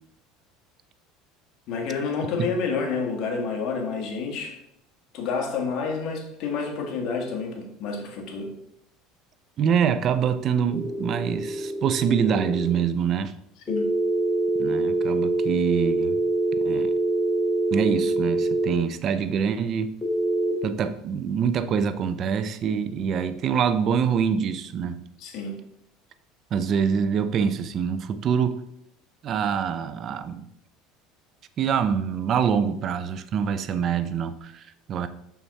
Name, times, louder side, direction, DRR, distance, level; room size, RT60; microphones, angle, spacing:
voice 1, 1.7-4.6 5.1-8.5 13.7-13.9 25.2-25.6, left 5 dB, 55° left, 2 dB, 1.7 m, -29 dB
voice 2, 9.6-13.3 14.6-16.2 16.6-16.9 17.7-20.0 20.6-25.0 26.5-28.6 29.2-30.5 31.6-35.1, right 7 dB, 40° right, 12 dB, 0.6 m, -25 dB
sound 1, 10.7-12.7 13.7-18.7 20.0-20.5, right 2 dB, 10° left, 1.9 m, -25 dB
6.0 x 5.7 x 4.1 m, 0.78 s
supercardioid pair, 130°, 0 cm